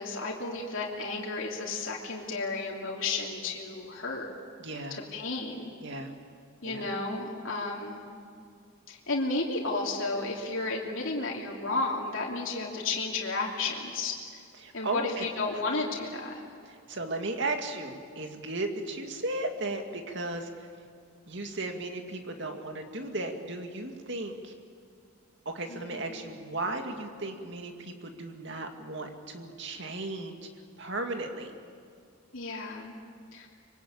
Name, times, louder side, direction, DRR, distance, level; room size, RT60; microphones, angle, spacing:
voice 1, 0.0-4.3 4.9-5.7 6.6-8.0 8.9-14.1 14.7-16.4 25.7-26.2 32.3-32.9 33.3-33.5, left 3 dB, 65° left, -3 dB, 3.1 m, -33 dB
voice 2, 4.6-5.0 5.8-6.1 6.6-6.9 14.6-15.3 15.5-15.8 16.7-20.7 21.3-24.5 25.5-30.4 30.8-31.5, right 2 dB, 55° right, 4 dB, 2.5 m, -35 dB
25.5 x 23.5 x 8.7 m, 2.2 s
head